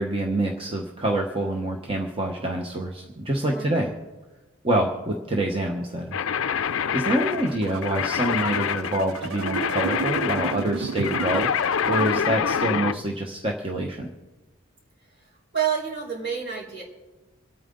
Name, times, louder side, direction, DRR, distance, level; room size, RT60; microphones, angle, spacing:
voice 1, 0.0-3.9 4.6-6.2 6.5-11.5 11.9-14.1, right 1 dB, 25° right, 0 dB, 1.0 m, -26 dB
voice 2, 3.5-3.9 15.2-16.8, right 8 dB, 55° right, -4 dB, 4.8 m, -29 dB
sound 1, 6.1-13.0, left 7 dB, 75° left, 0.5 m, -26 dB
sound 2, 7.0-12.3, right 6 dB, 90° right, 0.4 m, -33 dB
27.0 x 9.1 x 3.8 m, 1.2 s
head